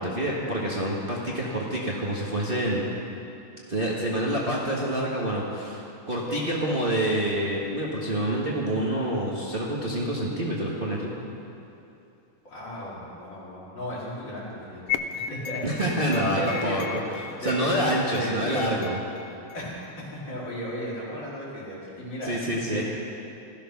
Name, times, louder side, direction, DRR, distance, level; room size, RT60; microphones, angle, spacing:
voice 1, 0.0-2.8 3.7-11.1 15.6-19.0 22.2-22.8, right 1 dB, 25° right, -5 dB, 1.7 m, -27 dB
voice 2, 12.4-16.8 17.4-17.6 18.0-18.8 19.5-22.8, equal, 55° left, -7 dB, 4.5 m, -35 dB
sound 1, 14.9-19.9, left 8 dB, 85° left, 1.6 m, -36 dB
16.0 x 13.5 x 5.9 m, 2.7 s
omnidirectional pair, 2.3 m